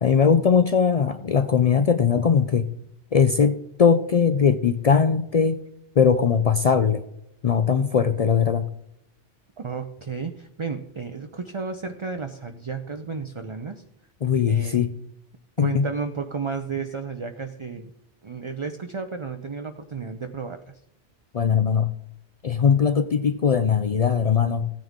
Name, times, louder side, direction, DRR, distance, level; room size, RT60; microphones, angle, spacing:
voice 1, 0.0-2.7 3.1-5.6 6.0-7.0 7.4-8.7 14.2-14.9 15.6-15.9 21.3-21.9 22.4-24.7, left 6 dB, 65° left, 11 dB, 0.3 m, -20 dB
voice 2, 9.6-13.8 14.3-14.9 15.6-17.9 18.2-20.6, right 5 dB, 40° right, 7 dB, 0.5 m, -32 dB
16.0 x 9.1 x 3.6 m, 0.81 s
omnidirectional pair, 1.2 m